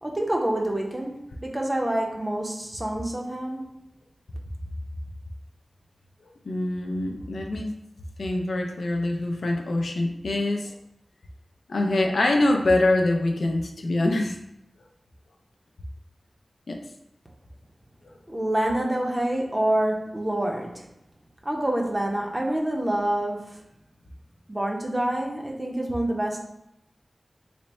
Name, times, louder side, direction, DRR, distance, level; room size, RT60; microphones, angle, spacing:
voice 1, 0.0-3.8 18.3-20.8 21.4-23.6 24.5-26.4, right 1 dB, 25° right, -1 dB, 0.6 m, -27 dB
voice 2, 6.5-7.7 8.2-10.7 11.7-14.4 16.7-16.8, left 2 dB, 90° left, 3 dB, 0.4 m, -24 dB
3.3 x 2.1 x 4.0 m, 0.84 s
wide cardioid pair, 65°, 0 cm